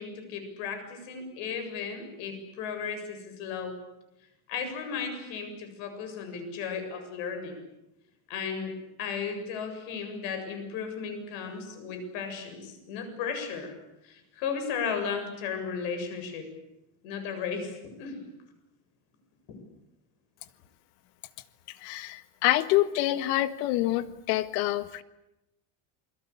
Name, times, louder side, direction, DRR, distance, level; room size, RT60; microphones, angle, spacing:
voice 1, 0.0-3.7 4.5-7.6 8.3-8.7 9.0-13.7 14.0-16.5 17.0-18.2 19.5-19.6, left 6 dB, 60° left, 6 dB, 7.6 m, -35 dB
voice 2, 21.7-25.0, left 15 dB, 80° left, 12 dB, 1.8 m, -27 dB
28.5 x 22.5 x 8.6 m, 0.90 s
cardioid pair, 175°, 47 cm